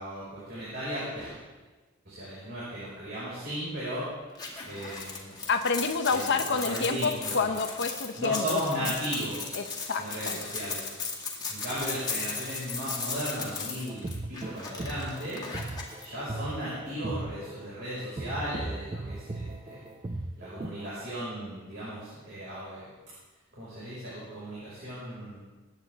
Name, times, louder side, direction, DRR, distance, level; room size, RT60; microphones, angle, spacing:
voice 1, 0.0-1.4 2.1-4.1 4.6-5.4 6.1-7.6 8.2-9.6 10.0-10.8 11.5-15.4 16.0-19.9 20.4-22.9 23.6-25.4, equal, 55° right, -9 dB, 5.5 m, -36 dB
sound 1, 4.4-16.1, left 4 dB, 20° left, 2.2 m, -37 dB
voice 2, 5.5-8.6 9.5-10.4, left 4 dB, 60° left, 6 dB, 0.9 m, -28 dB
sound 2, 13.9-20.9, right 2 dB, 20° right, 0.4 m, -37 dB
22.5 x 10.0 x 3.6 m, 1.2 s
head